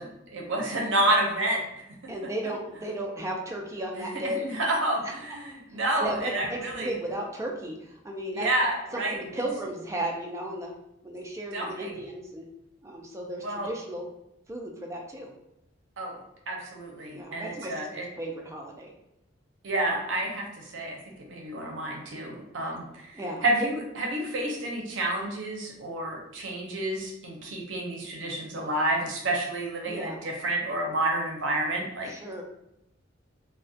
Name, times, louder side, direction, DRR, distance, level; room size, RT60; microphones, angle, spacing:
voice 1, 0.0-1.6 2.0-2.1 4.0-6.9 8.3-9.2 11.5-11.9 13.4-13.7 16.0-16.2 16.5-18.0 19.6-32.1, right 1 dB, 70° right, 0 dB, 0.6 m, -29 dB
voice 2, 2.1-4.4 5.7-8.5 8.9-10.7 11.0-12.5 12.8-14.1 14.5-15.3 17.1-18.9 22.6-22.7 23.1-23.4 29.8-30.2 32.1-32.4, right 1 dB, 15° right, 0 dB, 0.3 m, -35 dB
2.3 x 2.1 x 2.6 m, 0.84 s
head